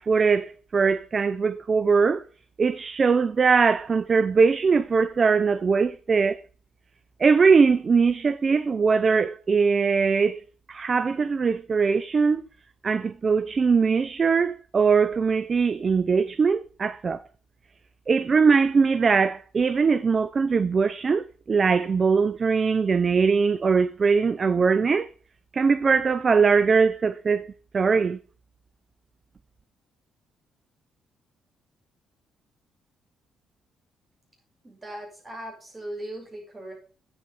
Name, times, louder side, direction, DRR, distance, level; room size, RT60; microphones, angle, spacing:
voice 1, 0.0-2.2 2.6-6.4 7.2-10.4 10.7-12.4 12.8-17.2 18.1-25.1 25.5-28.2, right 5 dB, 40° right, 0.5 m, -21 dB
voice 2, 34.6-36.7, right 1 dB, 20° right, 6.0 m, -38 dB
9.0 x 7.8 x 5.4 m
cardioid pair, 90°, 0 cm